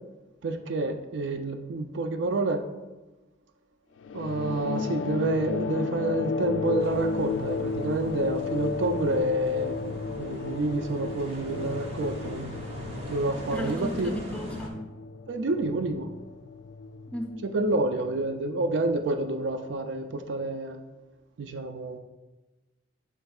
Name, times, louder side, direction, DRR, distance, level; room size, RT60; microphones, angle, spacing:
voice 1, 0.4-2.6 4.1-9.7 10.2-12.6 13.1-14.2 15.3-16.1 17.4-20.8 21.4-22.0, right 2 dB, 70° right, 7 dB, 0.4 m, -28 dB
sound 1, 4.0-18.9, left 5 dB, 75° left, 0.3 m, -34 dB
sound 2, 6.8-14.7, equal, 30° right, 1.1 m, -41 dB
voice 2, 13.5-14.7 17.1-17.3, equal, 5° left, 2 dB, 0.6 m, -34 dB
10.0 x 4.5 x 2.3 m, 1.1 s
head